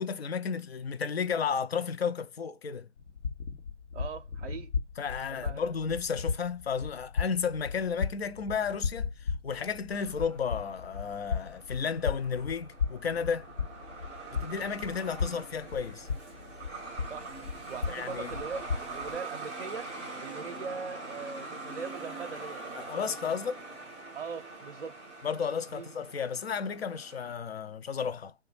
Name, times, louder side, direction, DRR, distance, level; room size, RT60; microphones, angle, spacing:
voice 1, 0.0-2.9 5.0-13.5 14.4-16.1 17.9-18.3 22.8-23.6 25.2-28.3, left 6 dB, 60° left, 0.5 m, -33 dB
sound 1, 3.0-19.2, left 5 dB, 80° left, 1.0 m, -36 dB
voice 2, 3.9-4.7 5.3-5.6 17.1-17.3 17.7-23.5 24.1-25.0 25.7-25.9, right 5 dB, 55° right, 0.5 m, -41 dB
Truck, 9.9-27.3, right 3 dB, 10° right, 0.5 m, -44 dB
2.7 x 2.2 x 3.1 m
figure-of-eight pair, 140°, 35 cm